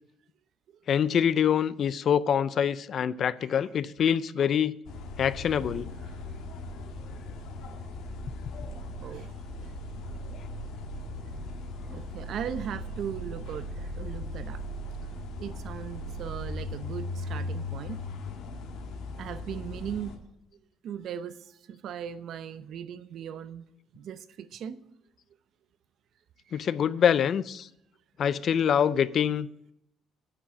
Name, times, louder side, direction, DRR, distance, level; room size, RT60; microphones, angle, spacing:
voice 1, 0.9-4.7 5.2-5.9 26.5-27.7 28.2-29.5, left 8 dB, 45° left, 0.4 m, -25 dB
sound 1, 4.8-20.2, left 1 dB, 70° left, 1.8 m, -38 dB
voice 2, 9.0-9.7 11.9-14.6 15.4-18.0 19.2-20.1 20.8-23.6 23.9-24.8 26.5-26.7, right 8 dB, 55° right, 0.7 m, -38 dB
9.9 x 6.2 x 8.3 m
cardioid pair, 140°, 0 cm